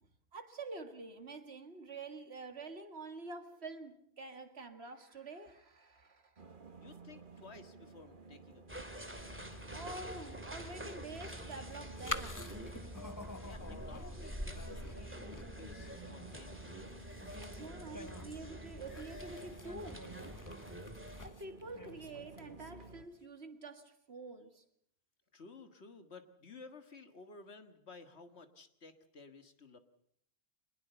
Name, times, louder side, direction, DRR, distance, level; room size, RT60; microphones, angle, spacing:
voice 1, 0.0-6.5 9.7-12.5 17.6-20.1 21.2-24.7, right 3 dB, 70° right, 7 dB, 2.2 m, -47 dB
sound 1, 6.4-23.0, right 2 dB, 50° right, 1.7 m, -53 dB
voice 2, 6.8-9.2 13.4-17.0 25.3-29.8, left 4 dB, 75° left, 8 dB, 2.0 m, -55 dB
sound 2, 8.7-21.3, equal, 10° right, 2.3 m, -47 dB
sound 3, 11.1-22.9, left 2 dB, 20° left, 0.9 m, -48 dB
23.5 x 20.0 x 6.9 m, 0.68 s
omnidirectional pair, 1.1 m